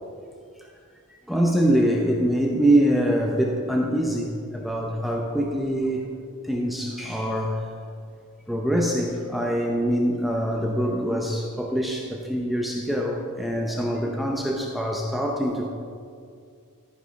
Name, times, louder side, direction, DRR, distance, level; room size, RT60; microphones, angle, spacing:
voice 1, 1.3-6.1 6.4-7.6 8.5-15.7, right 1 dB, ahead, -1 dB, 0.7 m, -24 dB
14.0 x 5.3 x 5.3 m, 2.3 s
head